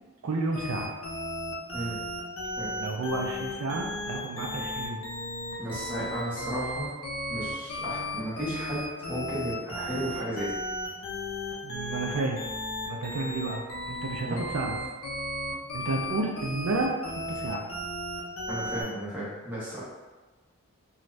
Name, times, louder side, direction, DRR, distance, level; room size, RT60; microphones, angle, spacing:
voice 1, 0.2-0.9 2.8-5.0 11.6-12.4 12.9-14.8 15.7-17.6, right 3 dB, 75° right, 1 dB, 0.4 m, -31 dB
sound 1, 0.5-18.8, left 1 dB, 70° left, 0.6 m, -35 dB
voice 2, 5.6-6.9 7.3-10.5 14.2-14.4 18.5-19.8, equal, 10° right, -10 dB, 0.9 m, -34 dB
2.5 x 2.3 x 3.1 m, 1.2 s
head